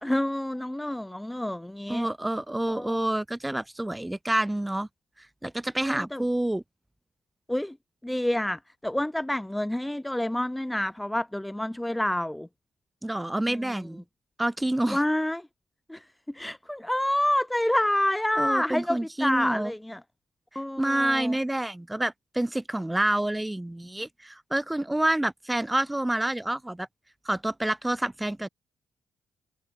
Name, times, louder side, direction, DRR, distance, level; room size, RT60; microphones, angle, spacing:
voice 1, 0.0-2.1 2.7-3.0 5.8-6.2 7.5-7.7 8.0-12.5 13.5-13.6 14.9-15.5 15.9-16.0 16.3-20.0 20.5-21.3, left 1 dB, 5° left, 3.1 m, -28 dB
voice 2, 1.9-4.9 5.4-6.6 13.0-14.0 14.4-15.0 18.4-19.7 20.8-26.9 27.2-28.5, right 1 dB, 10° right, 6.2 m, -28 dB
cardioid pair, 90°, 0 cm